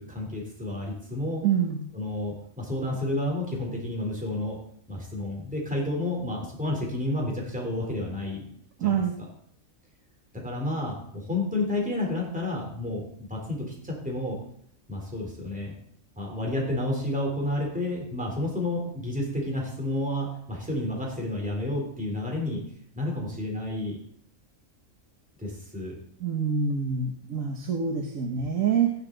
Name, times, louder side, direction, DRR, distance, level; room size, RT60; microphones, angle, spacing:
voice 1, 0.0-1.4 1.9-4.6 4.9-8.5 8.8-9.0 10.3-14.4 14.9-15.7 16.2-22.6 22.9-24.0 25.4-26.0, left 1 dB, 5° right, -2 dB, 3.6 m, -30 dB
voice 2, 1.4-1.9 8.8-9.1 26.2-28.9, right 6 dB, 75° right, 2 dB, 1.6 m, -26 dB
15.0 x 10.5 x 4.0 m, 0.68 s
omnidirectional pair, 1.4 m